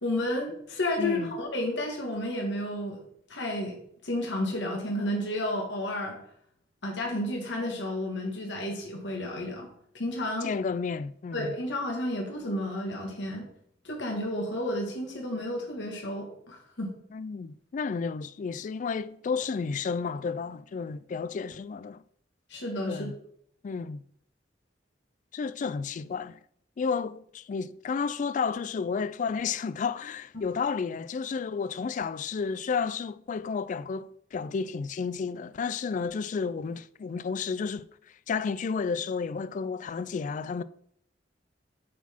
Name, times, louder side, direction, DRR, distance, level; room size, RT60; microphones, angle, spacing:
voice 1, 0.0-3.0 3.3-3.7 4.0-6.2 6.8-9.7 9.9-10.5 11.3-13.5 13.8-16.9 22.5-23.1 30.3-30.4, left 1 dB, 80° left, 1.6 m, -31 dB
voice 2, 1.0-1.3 10.4-11.5 17.1-22.0 22.9-23.2 23.6-24.0 25.3-26.4 26.8-37.9 38.3-40.6, left 5 dB, 45° left, 0.3 m, -32 dB
8.2 x 4.1 x 4.3 m
head